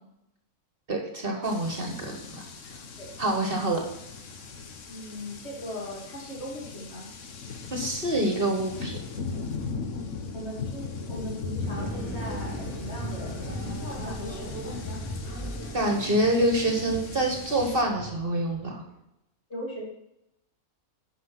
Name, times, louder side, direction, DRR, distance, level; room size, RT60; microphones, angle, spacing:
voice 1, 0.9-2.4 3.2-3.8 7.7-9.0 15.7-18.8, right 1 dB, 40° right, 2 dB, 1.5 m, -26 dB
sound 1, 1.4-17.8, left 4 dB, 65° left, 1.3 m, -39 dB
voice 2, 4.9-7.1 10.3-15.1 19.5-19.8, left 1 dB, 50° left, -3 dB, 3.1 m, -39 dB
sound 2, 11.6-18.8, right 1 dB, 10° left, 2.7 m, -37 dB
9.5 x 5.7 x 5.8 m, 0.85 s
omnidirectional pair, 1.5 m